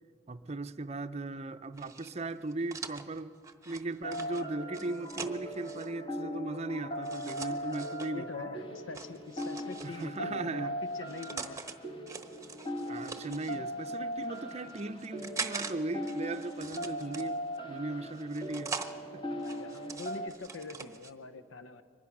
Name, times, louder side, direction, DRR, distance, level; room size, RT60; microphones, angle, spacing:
voice 1, 0.3-3.4 3.7-8.5 9.8-10.7 12.8-18.8 19.1-19.4, right 2 dB, 35° right, 0.6 m, -38 dB
sound 1, 1.8-5.9 7.0-8.1 8.9-10.2 10.9-11.7 12.1-13.6 14.2-15.7 16.0-17.6 18.1-18.9 19.4-21.1, right 4 dB, 15° right, 1.0 m, -43 dB
sound 2, 4.0-20.3, equal, 25° left, 1.3 m, -39 dB
voice 2, 8.1-11.6 14.4-14.6 19.4-21.8, left 4 dB, 75° left, 0.8 m, -44 dB
23.5 x 20.0 x 6.0 m
head